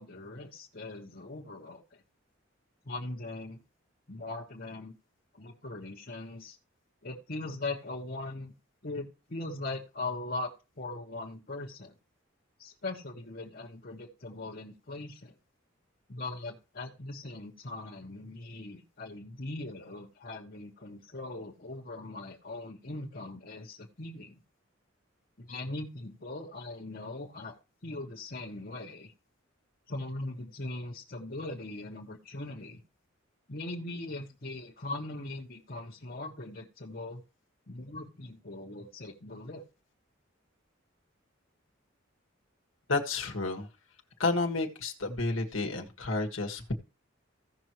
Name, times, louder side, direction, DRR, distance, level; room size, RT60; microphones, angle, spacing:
voice 1, 0.0-1.8 2.8-3.6 4.1-5.0 5.3-6.6 7.0-8.5 8.8-10.5 10.8-11.9 12.6-15.3 16.1-24.4 25.4-27.5 27.8-29.1 29.9-32.8 33.5-37.2 37.7-39.6, left 2 dB, 50° left, -4 dB, 1.5 m, -40 dB
voice 2, 42.9-43.7 44.2-46.7, left 3 dB, 75° left, 2 dB, 1.7 m, -31 dB
16.0 x 6.2 x 3.1 m, 0.31 s
head